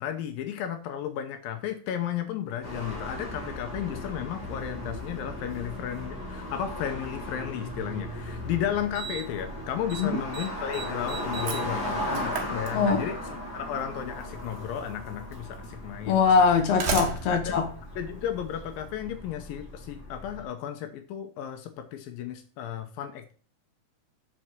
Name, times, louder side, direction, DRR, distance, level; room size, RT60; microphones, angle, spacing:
voice 1, 0.0-13.2 13.5-16.2 17.3-17.5 18.0-23.3, left 10 dB, 80° left, 7 dB, 2.5 m, -34 dB
sound 1, 2.6-20.4, left 1 dB, 30° left, 2.2 m, -37 dB
Slam, 8.1-8.2 8.9-9.4 9.7-10.0 10.3-13.3 14.4-14.5 15.4-15.5 16.4-18.8, right 6 dB, 70° right, 2.9 m, -35 dB
voice 2, 16.1-17.7, left 5 dB, 55° left, 3 dB, 2.2 m, -22 dB
7.5 x 4.5 x 5.9 m, 0.40 s
omnidirectional pair, 4.1 m